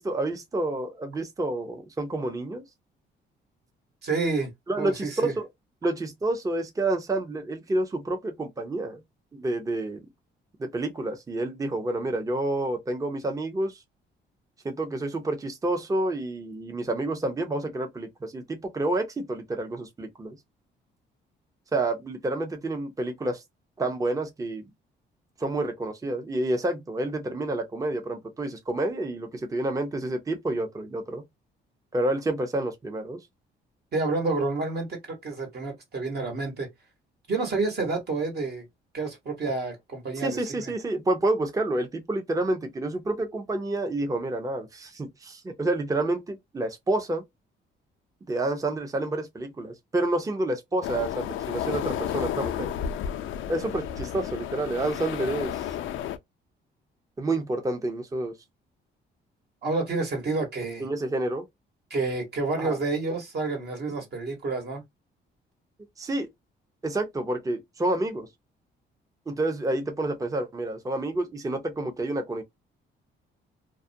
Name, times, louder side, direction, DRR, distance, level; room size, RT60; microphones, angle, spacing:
voice 1, 0.0-2.6 4.7-5.5 5.8-9.0 9.3-10.0 10.6-13.8 14.6-20.4 21.7-23.4 23.8-24.7 25.4-31.2 31.9-33.2 40.2-47.2 48.3-52.7 53.5-55.6 57.2-58.3 60.8-61.5 62.6-62.8 66.0-66.3 66.8-68.3 69.3-72.4, right 2 dB, 15° right, 0.6 m, -29 dB
voice 2, 4.0-4.5 4.8-5.3 33.9-36.7 37.3-38.6 38.9-40.6 59.6-60.9 61.9-64.8, right 3 dB, 55° right, 1.1 m, -29 dB
sound 1, 50.8-56.2, left 10 dB, 75° left, 0.4 m, -32 dB
2.3 x 2.1 x 2.6 m
cardioid pair, 90°, 20 cm